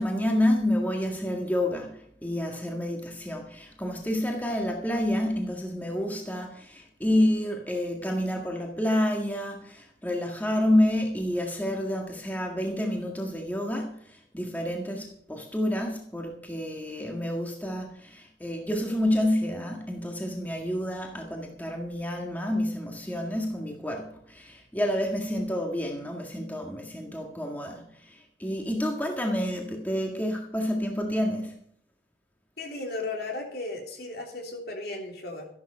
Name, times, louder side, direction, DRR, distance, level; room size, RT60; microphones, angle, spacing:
voice 1, 0.0-31.5, left 1 dB, 10° left, 1 dB, 1.8 m, -29 dB
voice 2, 32.6-35.5, left 2 dB, 55° left, 1 dB, 3.3 m, -35 dB
14.0 x 11.0 x 5.5 m, 0.63 s
head